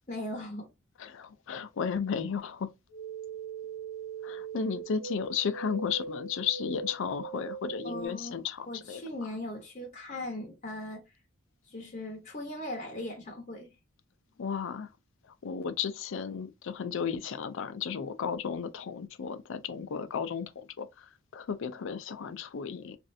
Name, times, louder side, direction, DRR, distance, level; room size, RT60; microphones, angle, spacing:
voice 1, 0.1-0.7 7.8-11.0 11.7-13.7, left 1 dB, 35° left, 0.8 m, -39 dB
voice 2, 1.0-2.7 4.2-9.0 14.4-14.9 15.4-23.0, left 6 dB, 60° left, 0.4 m, -34 dB
sound 1, 2.9-8.1, right 5 dB, 55° right, 1.3 m, -40 dB
3.1 x 2.5 x 2.6 m
head